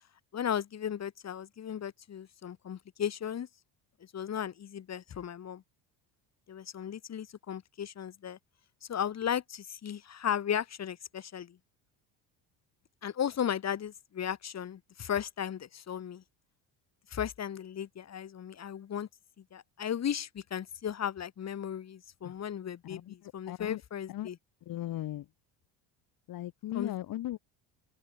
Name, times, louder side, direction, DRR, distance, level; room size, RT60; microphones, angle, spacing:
voice 1, 0.3-3.5 4.0-5.6 6.5-8.4 8.8-11.6 13.0-16.2 17.1-19.1 19.4-24.4 26.7-27.0, left 9 dB, 45° left, 4.8 m, -36 dB
voice 2, 22.9-23.8 24.1-24.3 24.7-25.3 26.3-27.4, left 14 dB, 60° left, 4.5 m, -38 dB
open air
cardioid pair, 110°, 38 cm